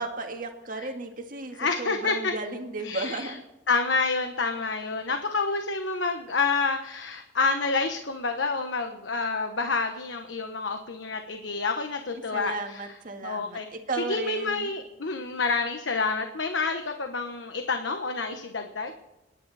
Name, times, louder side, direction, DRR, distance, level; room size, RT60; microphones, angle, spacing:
voice 1, 0.0-3.4 12.3-14.7, right 3 dB, 50° right, 3 dB, 1.9 m, -34 dB
voice 2, 1.6-2.3 2.8-3.4 3.7-13.0 13.2-13.7 14.0-18.9, left 4 dB, 80° left, 6 dB, 1.2 m, -28 dB
27.5 x 10.5 x 4.2 m, 0.97 s
head